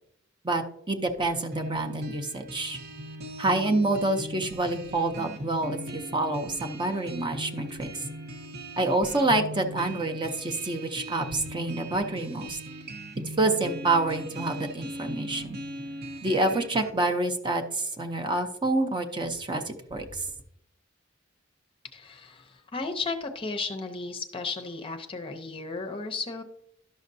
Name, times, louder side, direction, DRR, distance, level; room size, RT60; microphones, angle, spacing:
voice 1, 0.4-2.8 3.4-7.9 8.8-12.6 13.4-15.6 16.2-20.2, right 2 dB, 25° right, 5 dB, 0.6 m, -27 dB
sound 1, 1.5-16.9, right 1 dB, 50° right, 0.9 m, -39 dB
voice 2, 21.9-26.4, left 3 dB, 25° left, 6 dB, 0.6 m, -34 dB
11.5 x 6.3 x 2.6 m, 0.72 s
head